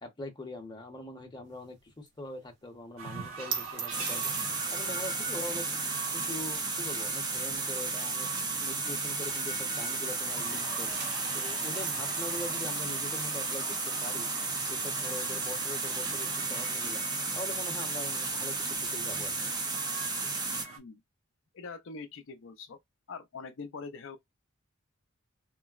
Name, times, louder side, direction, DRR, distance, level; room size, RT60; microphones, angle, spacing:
voice 1, 0.0-4.3 4.7-5.7 6.1-10.9 11.3-14.3 14.7-17.0 17.3-19.5, left 1 dB, 20° left, 0.7 m, -42 dB
sound 1, 1.5-10.3 10.6-17.9, right 7 dB, 55° right, 0.7 m, -44 dB
sound 2, 3.0-20.8, right 4 dB, 90° right, 1.2 m, -44 dB
sound 3, 3.9-20.7, right 3 dB, 20° right, 0.5 m, -33 dB
voice 2, 21.5-22.8 23.1-24.2, left 4 dB, 65° left, 0.5 m, -43 dB
3.8 x 2.0 x 2.3 m
head